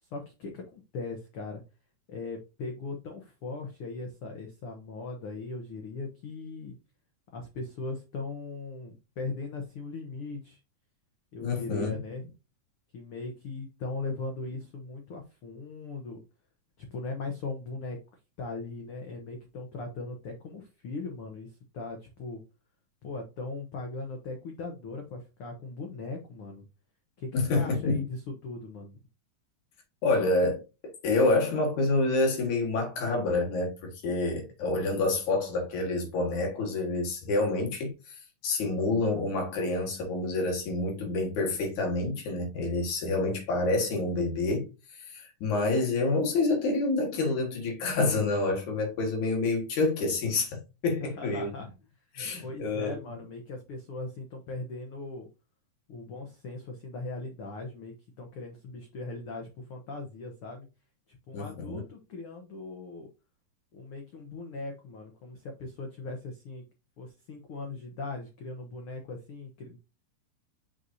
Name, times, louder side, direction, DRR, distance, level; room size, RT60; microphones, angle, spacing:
voice 1, 0.0-1.6 2.1-6.8 7.3-10.6 11.3-12.3 12.9-16.2 16.8-18.0 18.4-22.4 23.0-26.7 27.2-29.0 51.0-51.7 52.0-55.3 55.9-60.7 61.1-63.1 63.7-66.6 67.0-69.8, left 3 dB, 90° left, 1.2 m, -39 dB
voice 2, 11.4-12.0 27.3-28.0 30.0-51.5 52.1-53.0 61.3-61.8, left 2 dB, 65° left, 3.0 m, -28 dB
6.4 x 5.5 x 2.7 m
omnidirectional pair, 3.9 m